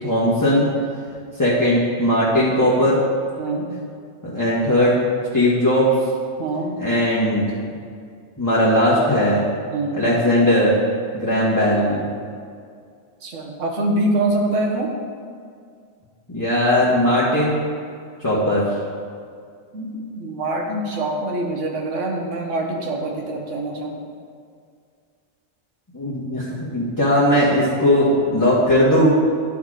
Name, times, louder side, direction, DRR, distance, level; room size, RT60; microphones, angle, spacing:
voice 1, 0.0-0.7 1.4-3.0 4.2-4.9 5.3-5.9 6.8-7.4 8.4-9.4 9.9-10.7 11.1-12.0 16.3-17.6 18.2-18.6 25.9-29.1, left 1 dB, 15° left, -9 dB, 1.3 m, -18 dB
voice 2, 3.4-3.7 6.4-6.8 9.7-10.1 13.2-14.9 19.7-24.1, right 2 dB, 85° right, 1 dB, 1.4 m, -24 dB
11.5 x 4.4 x 4.9 m, 2.2 s
omnidirectional pair, 1.2 m